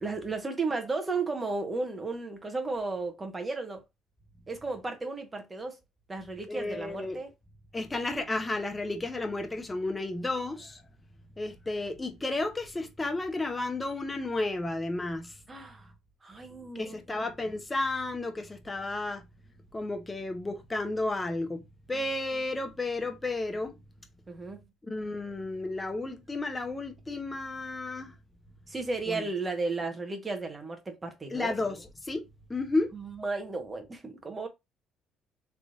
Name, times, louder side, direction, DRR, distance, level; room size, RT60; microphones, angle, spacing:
voice 1, 0.0-3.8 4.5-5.8 6.1-7.3 15.5-15.9 16.2-16.9 21.9-22.0 24.3-24.6 28.7-31.6 32.9-34.5, right 3 dB, 25° right, 1.3 m, -34 dB
voice 2, 6.5-7.2 7.7-10.8 11.4-15.3 16.7-19.2 19.7-21.6 21.9-23.8 24.9-28.1 29.1-29.3 31.3-32.9, left 2 dB, 20° left, 1.0 m, -32 dB
3.5 x 3.2 x 2.7 m
supercardioid pair, 65°, 0 cm